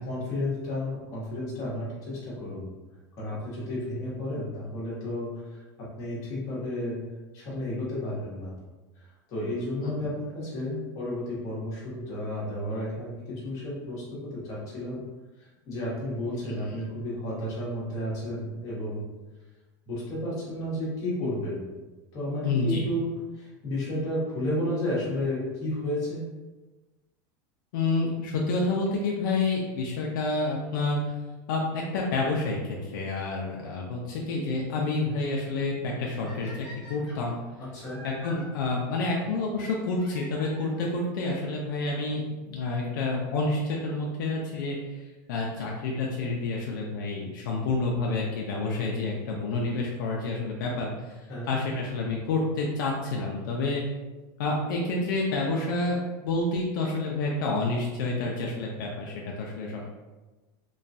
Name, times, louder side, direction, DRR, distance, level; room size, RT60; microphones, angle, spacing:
voice 1, 0.1-2.7 3.2-7.0 7.3-8.6 9.0-9.1 9.3-15.0 15.7-19.0 19.9-21.6 22.1-23.0 23.3-26.2 37.6-38.0 51.3-51.5, left 1 dB, 30° left, -7 dB, 1.1 m, -32 dB
voice 2, 22.4-22.8 27.7-31.1 31.5-37.4 38.0-45.0 45.3-53.8 54.4-56.0 56.2-59.9, left 3 dB, 70° left, -2 dB, 0.5 m, -29 dB
sound 1, 36.2-38.4 39.9-41.0 41.9-42.0 42.7-42.8 43.0-43.1 45.0-45.2 48.0-48.1 49.2-49.3 50.7-50.8 51.1-51.2 51.4-51.5 51.7-51.8 52.0-52.1 52.2-52.3 52.6-52.7, equal, ahead, 0.8 m, -48 dB
3.0 x 2.2 x 2.6 m, 1.2 s
supercardioid pair, 175°, 11 cm